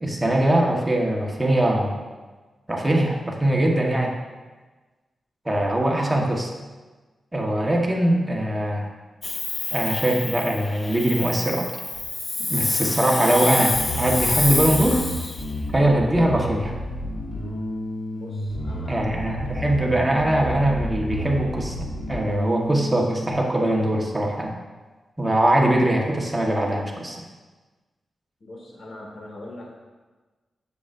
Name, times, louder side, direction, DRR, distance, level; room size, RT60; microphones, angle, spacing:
voice 1, 0.0-2.0 2.7-4.1 5.4-6.5 7.3-8.9 9.7-11.7 12.5-15.0 15.7-16.7 18.9-24.5 25.2-27.2, right 1 dB, 15° right, -1 dB, 1.3 m, -22 dB
Hiss, 9.2-15.5, left 3 dB, 35° left, 0.4 m, -27 dB
Bass guitar, 13.7-23.3, left 1 dB, 75° left, 1.8 m, -31 dB
voice 2, 18.1-19.3 28.4-29.8, left 1 dB, 60° left, -2 dB, 1.9 m, -41 dB
8.2 x 6.7 x 2.6 m, 1.3 s
cardioid pair, 75°, 0 cm